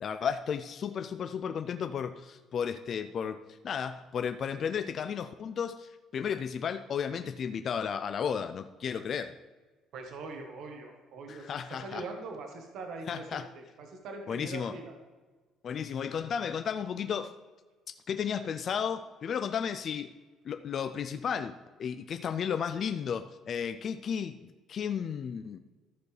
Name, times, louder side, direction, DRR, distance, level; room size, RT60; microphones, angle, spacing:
voice 1, 0.0-9.4 11.3-12.0 13.1-13.5 14.3-14.7 15.6-17.3 17.9-20.2 20.4-25.6, left 7 dB, 35° left, 9 dB, 0.3 m, -34 dB
voice 2, 9.9-14.9, right 3 dB, 55° right, 3 dB, 1.2 m, -42 dB
13.5 x 6.8 x 3.3 m, 1.3 s
cardioid pair, 175°, 0 cm